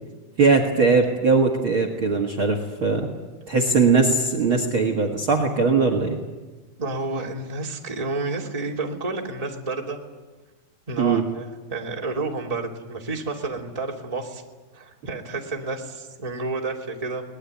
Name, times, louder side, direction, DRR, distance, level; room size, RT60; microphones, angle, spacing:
voice 1, 0.4-3.1 3.5-6.2 11.0-11.2, right 4 dB, 45° right, 6 dB, 2.2 m, -20 dB
voice 2, 6.8-10.0 10.9-14.4 14.7-17.2, right 3 dB, 10° right, 0 dB, 2.3 m, -30 dB
23.0 x 19.5 x 9.5 m, 1.2 s
omnidirectional pair, 4.0 m